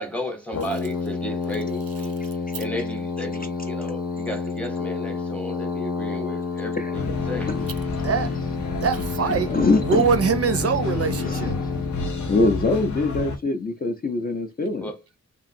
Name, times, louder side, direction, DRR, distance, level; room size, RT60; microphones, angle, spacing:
voice 1, 0.0-2.2 2.6-7.5 14.8-15.0, left 1 dB, 5° left, 0.7 m, -34 dB
Brass instrument, 0.5-12.8, left 4 dB, 60° left, 0.8 m, -30 dB
voice 2, 6.7-7.1 7.5-7.7 9.3-10.1 11.2-11.4 12.3-14.9, left 3 dB, 30° left, 0.4 m, -23 dB
sound 1, 6.9-13.4, left 4 dB, 85° left, 0.6 m, -30 dB
voice 3, 8.0-8.3 8.7-9.5 9.8-11.6, right 5 dB, 55° right, 0.5 m, -23 dB
2.9 x 2.5 x 2.5 m
wide cardioid pair, 100°, 29 cm